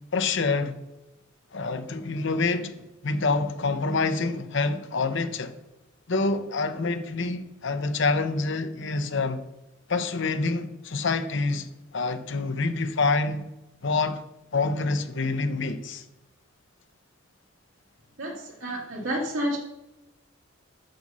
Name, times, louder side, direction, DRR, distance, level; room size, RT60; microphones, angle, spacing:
voice 1, 0.1-0.7 1.5-2.7 3.0-5.5 6.1-9.4 9.9-13.4 13.8-14.2 14.5-16.0, left 3 dB, 65° left, 0.8 m, -26 dB
voice 2, 18.2-19.6, equal, 80° right, 2.0 m, -30 dB
7.9 x 6.7 x 5.4 m
head